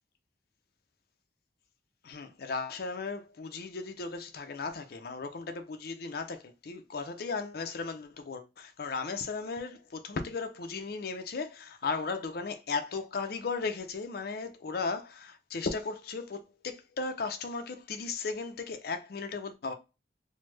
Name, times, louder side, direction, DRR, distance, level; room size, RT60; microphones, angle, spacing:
voice 1, 2.0-19.7, left 4 dB, 55° left, 0.5 m, -36 dB
3.1 x 2.0 x 3.1 m
head